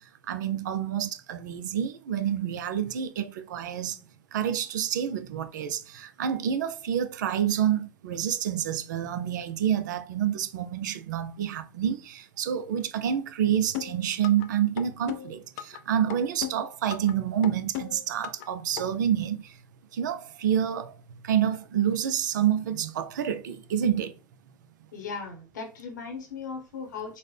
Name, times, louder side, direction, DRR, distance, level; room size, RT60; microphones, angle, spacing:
voice 1, 0.3-4.0 4.3-19.6 19.9-20.9 21.2-24.1, right 9 dB, 80° right, 0.5 m, -28 dB
sound 1, 13.7-14.5 14.8-15.8 16.1-17.1 17.4-18.5 18.8-18.9, left 12 dB, 70° left, 0.5 m, -35 dB
voice 2, 24.9-27.2, left 5 dB, 85° left, 1.0 m, -37 dB
3.9 x 2.1 x 3.3 m
hypercardioid pair, 85°, 10 cm